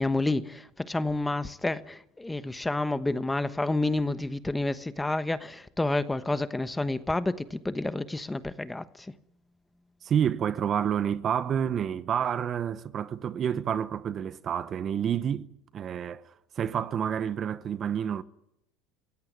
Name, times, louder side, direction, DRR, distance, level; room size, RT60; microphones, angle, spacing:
voice 1, 0.0-8.8, left 2 dB, 10° left, 1.2 m, -29 dB
voice 2, 10.0-15.5 15.7-18.2, right 8 dB, 40° right, 0.9 m, -29 dB
26.0 x 16.5 x 9.9 m
supercardioid pair, 105°, 0 cm